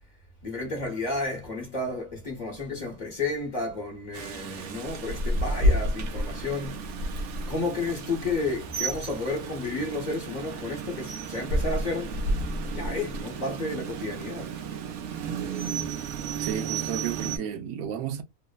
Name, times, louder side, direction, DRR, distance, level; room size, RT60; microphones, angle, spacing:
voice 1, 0.4-6.8 7.5-12.2 12.7-14.5, left 2 dB, 40° left, 0.8 m, -32 dB
Rain, 4.1-17.4, right 1 dB, 65° right, 0.8 m, -31 dB
voice 2, 16.4-18.2, right 8 dB, 90° right, 1.1 m, -32 dB
3.0 x 2.0 x 2.2 m
omnidirectional pair, 1.5 m